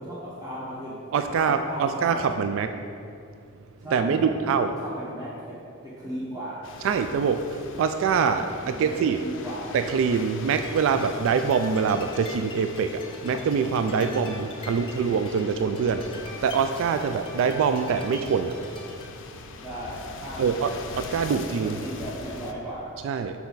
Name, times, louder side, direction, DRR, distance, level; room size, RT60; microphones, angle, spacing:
voice 1, 0.0-1.1 1.5-2.2 3.8-5.6 5.8-6.6 8.6-9.7 19.6-20.8 21.2-22.9, equal, 15° right, -8 dB, 1.0 m, -37 dB
voice 2, 1.1-2.7 3.9-4.7 6.8-9.2 9.7-16.0 16.4-18.6 20.4-20.7 21.0-21.8 23.0-23.4, right 6 dB, 65° right, 9 dB, 0.3 m, -24 dB
sound 1, 6.6-22.5, left 4 dB, 60° left, 0.5 m, -42 dB
sound 2, 10.3-19.1, left 2 dB, 25° left, 0.7 m, -44 dB
6.4 x 5.8 x 4.0 m, 2.4 s
head